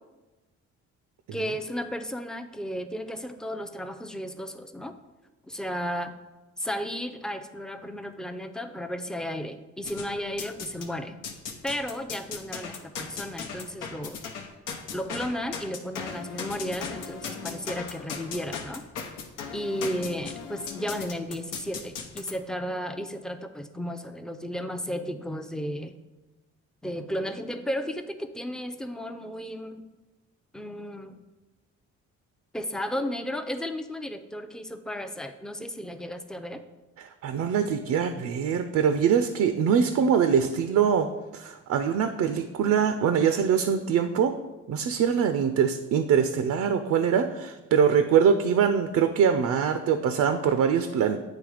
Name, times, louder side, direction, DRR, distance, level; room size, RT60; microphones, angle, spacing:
voice 1, 1.3-4.9 5.5-6.1 6.6-11.2 11.6-14.2 14.9-18.8 19.5-25.9 26.8-29.8 30.5-31.2 32.5-36.6, equal, ahead, 7 dB, 0.5 m, -34 dB
sound 1, 9.8-10.9 11.2-22.3, left 6 dB, 85° left, 0.9 m, -37 dB
voice 2, 37.0-41.1 41.3-44.4 44.7-51.2, right 7 dB, 65° right, 8 dB, 0.5 m, -23 dB
8.6 x 3.3 x 4.9 m, 1.1 s
cardioid pair, 90°, 30 cm